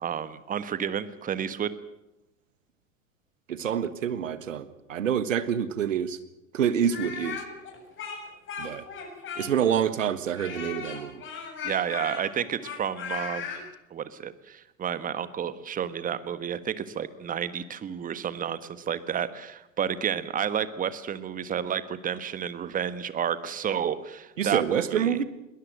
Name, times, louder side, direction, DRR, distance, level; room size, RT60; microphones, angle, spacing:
voice 1, 0.0-1.7 11.6-13.6 13.9-18.6 18.9-25.2, right 8 dB, 20° right, 14 dB, 1.4 m, -31 dB
voice 2, 3.5-6.2 6.5-7.4 8.6-8.8 9.4-11.2 24.4-25.2, right 8 dB, 70° right, 14 dB, 1.6 m, -27 dB
Speech, 6.8-9.7 10.4-13.6, left 6 dB, 30° left, 7.1 m, -37 dB
21.5 x 20.0 x 7.9 m, 0.89 s
figure-of-eight pair, 85°, 40 cm